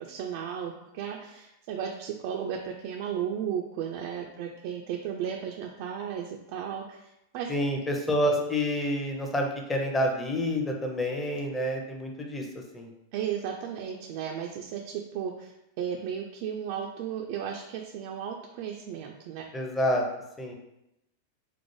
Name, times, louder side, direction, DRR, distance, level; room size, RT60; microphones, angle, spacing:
voice 1, 0.0-7.1 7.3-7.5 13.1-19.5, right 8 dB, 50° right, 1 dB, 0.3 m, -34 dB
voice 2, 7.5-12.4 12.7-12.9 19.5-20.0 20.4-20.5, equal, 15° left, 1 dB, 0.6 m, -28 dB
4.5 x 2.0 x 3.1 m, 0.87 s
figure-of-eight pair, 90°, 0 cm